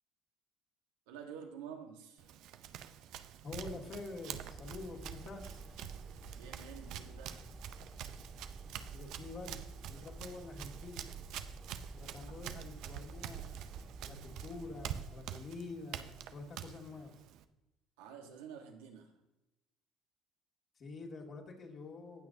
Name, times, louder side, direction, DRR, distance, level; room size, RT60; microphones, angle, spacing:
voice 1, 1.1-2.2 6.3-7.5 12.3-12.4 18.0-19.2, right 7 dB, 85° right, 3 dB, 1.3 m, -49 dB
Run, 2.2-17.4, right 10 dB, 70° right, 0.6 m, -47 dB
voice 2, 3.4-5.6 8.9-11.1 11.9-17.1 20.8-22.3, left 3 dB, 45° left, -1 dB, 2.5 m, -47 dB
sound 1, 4.4-15.0, right 3 dB, 20° right, 2.0 m, -50 dB
18.0 x 6.1 x 2.8 m, 0.99 s
supercardioid pair, 80°, 0 cm